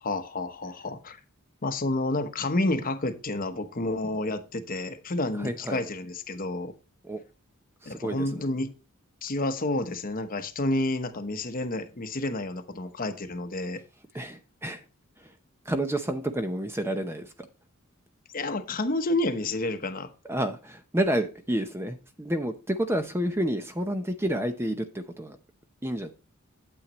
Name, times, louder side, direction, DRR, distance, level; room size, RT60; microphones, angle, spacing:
voice 1, 0.0-1.2 1.6-6.7 7.9-8.7 9.2-13.8 18.3-20.1, left 2 dB, 40° left, 8 dB, 0.9 m, -30 dB
voice 2, 5.3-5.8 7.0-7.2 7.8-8.5 14.1-14.8 15.2-15.3 15.7-17.5 20.2-25.4 25.8-26.1, right 1 dB, 10° right, 8 dB, 0.6 m, -30 dB
8.9 x 8.1 x 3.0 m, 0.32 s
head